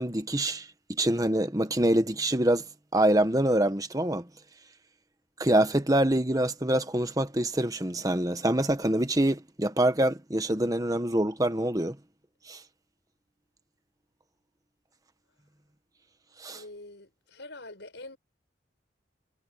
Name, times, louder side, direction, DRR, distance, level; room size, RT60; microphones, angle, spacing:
voice 1, 0.0-2.6 2.9-4.3 5.4-12.0 12.5-12.6 16.4-16.6, right 1 dB, 20° right, 1.3 m, -25 dB
voice 2, 16.4-18.2, left 2 dB, 70° left, 5.7 m, -45 dB
head